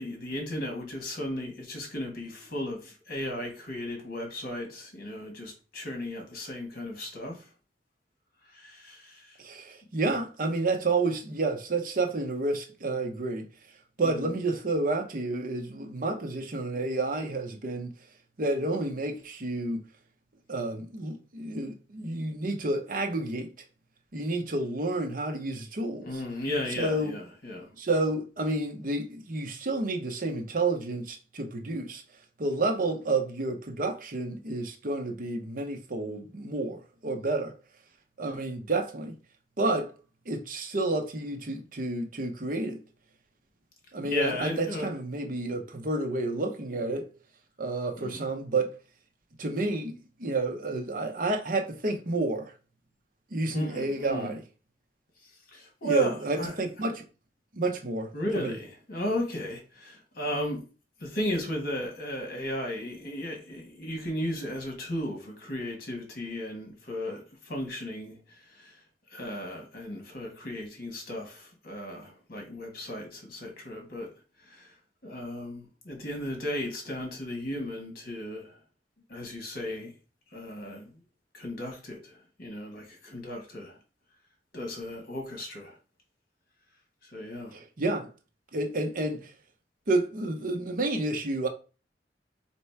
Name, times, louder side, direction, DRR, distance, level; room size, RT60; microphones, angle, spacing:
voice 1, 0.0-7.5 8.5-9.4 14.0-14.3 26.0-27.7 44.0-44.9 45.4-45.5 48.0-48.2 53.5-54.3 55.5-56.6 58.1-60.6 61.0-68.8 69.1-74.1 74.4-74.7 75.0-78.6 79.1-79.9 80.3-81.0 81.3-83.8 84.5-85.7 87.0-87.6, left 1 dB, 55° left, 1.5 m, -35 dB
voice 2, 9.4-13.5 14.0-17.9 18.4-19.8 20.5-23.5 24.1-26.2 26.8-27.1 27.8-32.0 32.4-37.5 38.2-39.2 39.6-39.9 40.3-42.8 43.9-47.1 47.6-48.7 49.4-49.9 50.2-52.5 53.3-54.4 55.8-57.0 57.5-58.6 87.5-88.1 88.5-89.3 89.9-91.5, right 2 dB, 50° right, 0.8 m, -30 dB
3.3 x 3.0 x 4.4 m
head